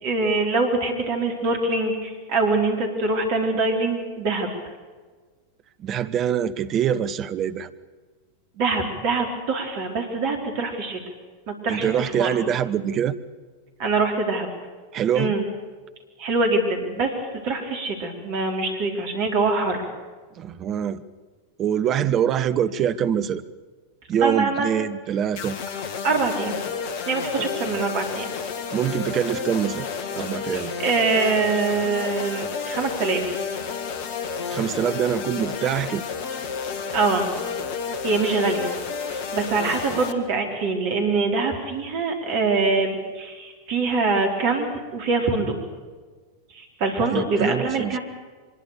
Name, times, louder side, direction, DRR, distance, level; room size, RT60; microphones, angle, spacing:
voice 1, 0.0-4.5 8.6-11.0 11.5-11.9 12.2-12.3 13.8-14.5 15.1-15.5 16.2-17.1 17.4-19.8 24.2-24.7 26.0-26.6 27.1-28.3 30.5-33.4 36.9-37.3 38.0-38.7 39.0-45.5 46.5-48.0, right 3 dB, 45° right, 3 dB, 4.6 m, -24 dB
voice 2, 5.8-7.7 11.7-13.2 14.9-15.3 20.4-21.0 21.6-23.4 24.1-25.6 27.4-27.5 28.7-29.9 30.2-30.7 34.5-36.0 47.1-48.0, right 9 dB, 30° right, 12 dB, 1.0 m, -24 dB
sound 1, 25.4-40.1, left 6 dB, 50° left, 1.9 m, -31 dB
24.0 x 22.0 x 6.8 m, 1.4 s
figure-of-eight pair, 90°, 0 cm